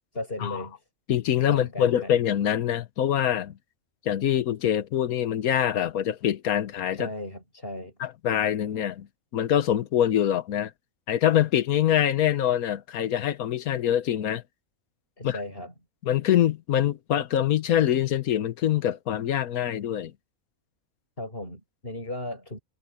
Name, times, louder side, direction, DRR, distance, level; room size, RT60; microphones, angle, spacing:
voice 1, 0.1-0.8 1.5-2.1 6.9-7.9 15.2-15.7 21.2-22.6, left 1 dB, 40° left, 8.1 m, -36 dB
voice 2, 1.1-3.5 4.0-7.1 8.0-9.1 9.3-10.7 11.1-14.4 15.2-15.4 16.0-20.1, left 10 dB, 80° left, 1.4 m, -24 dB
omnidirectional pair, 1.5 m